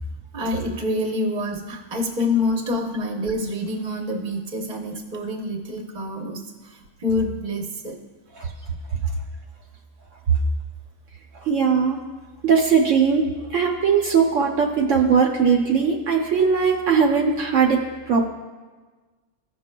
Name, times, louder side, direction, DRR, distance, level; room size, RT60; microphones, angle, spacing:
voice 1, 0.3-8.0, left 2 dB, 35° right, 0 dB, 1.0 m, -27 dB
voice 2, 11.4-12.0 12.4-18.3, right 6 dB, 70° right, 1 dB, 1.0 m, -19 dB
15.5 x 6.1 x 2.2 m, 1.3 s
omnidirectional pair, 1.4 m